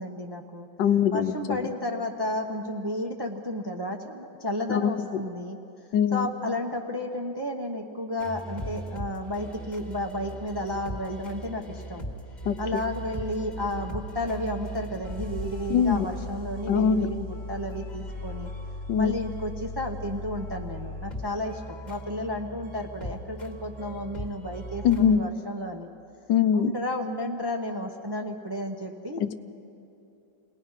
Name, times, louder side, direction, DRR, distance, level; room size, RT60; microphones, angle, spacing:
voice 1, 0.0-0.7 1.1-5.6 6.1-12.0 12.6-18.5 19.0-25.9 26.5-29.2, left 1 dB, 20° right, 2 dB, 0.7 m, -32 dB
voice 2, 0.8-1.6 4.7-5.1 5.9-6.3 12.5-12.8 15.7-16.1 16.7-17.1 18.9-19.2 24.8-25.3 26.3-26.7 29.2-29.3, left 8 dB, 75° left, 10 dB, 1.3 m, -23 dB
sound 1, 8.2-25.2, equal, 25° left, 1.7 m, -38 dB
28.0 x 19.5 x 5.6 m, 2.8 s
omnidirectional pair, 2.0 m